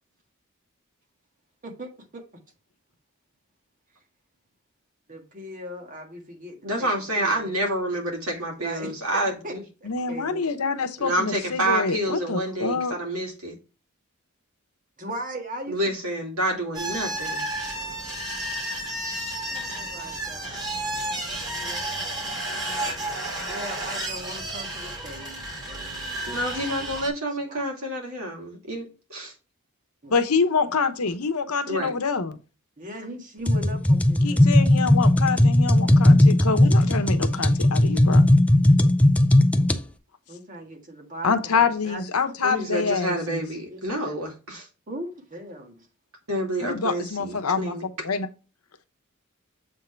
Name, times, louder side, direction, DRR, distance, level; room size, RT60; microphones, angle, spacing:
voice 1, 1.6-2.2 5.1-6.9 7.2-7.5 8.6-10.6 15.0-15.8 19.5-20.7 21.5-22.0 23.5-26.2 26.9-27.0 27.4-27.6 30.0-30.1 32.8-34.5 40.3-42.0 43.7-44.2 44.9-45.9, right 1 dB, 40° right, 1.7 m, -39 dB
voice 2, 6.6-9.6 11.0-13.6 15.7-17.5 26.3-29.3 31.7-31.9 42.4-44.7 46.3-47.8, right 1 dB, 80° right, 2.4 m, -28 dB
voice 3, 9.8-12.9 30.1-32.4 34.2-38.2 41.2-43.4 46.6-47.8 48.0-48.3, left 5 dB, 85° left, 1.0 m, -26 dB
sound 1, 16.7-27.1, right 1 dB, 20° right, 2.6 m, -32 dB
sound 2, 33.5-39.8, left 1 dB, 5° left, 0.5 m, -17 dB
7.6 x 3.7 x 4.4 m
head